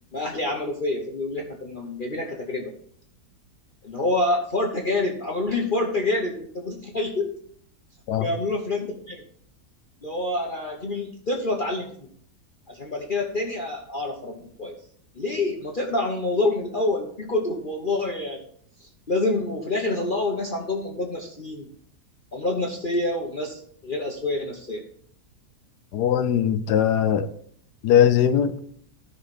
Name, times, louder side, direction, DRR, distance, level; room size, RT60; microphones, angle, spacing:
voice 1, 0.1-2.7 3.8-7.3 8.2-9.2 10.0-12.1 12.7-14.8 15.1-18.4 18.8-21.7 22.3-24.8, left 2 dB, 35° left, 1.1 m, -27 dB
voice 2, 25.9-27.3 27.8-28.5, left 9 dB, 80° left, 1.3 m, -20 dB
13.0 x 5.7 x 4.1 m
omnidirectional pair, 1.7 m